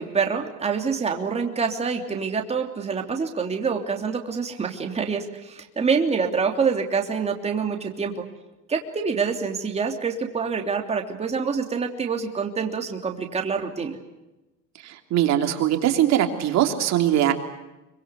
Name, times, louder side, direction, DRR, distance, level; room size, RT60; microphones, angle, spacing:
voice 1, 0.0-8.2 8.7-14.0, right 5 dB, 20° right, 3 dB, 3.1 m, -26 dB
voice 2, 14.8-17.3, right 11 dB, 55° right, 6 dB, 3.2 m, -21 dB
25.5 x 25.0 x 8.1 m, 1.0 s
cardioid pair, 145°, 33 cm